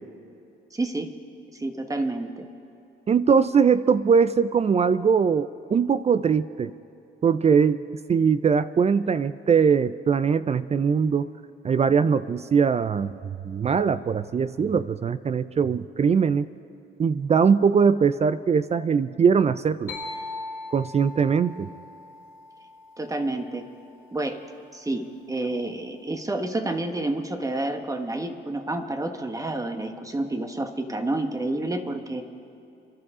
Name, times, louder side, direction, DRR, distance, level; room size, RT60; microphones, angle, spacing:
voice 1, 0.7-1.1 1.5-2.5 23.0-23.7 24.1-24.4 24.7-32.3, right 2 dB, 15° right, 7 dB, 1.2 m, -29 dB
voice 2, 3.1-6.7 7.2-7.8 8.1-11.3 11.6-16.5 17.0-20.0 20.7-21.7, right 6 dB, 35° right, 15 dB, 0.4 m, -21 dB
sound 1, 19.9-23.6, left 2 dB, 80° left, 2.5 m, -39 dB
28.5 x 12.0 x 3.7 m, 2.8 s
cardioid pair, 90°, 20 cm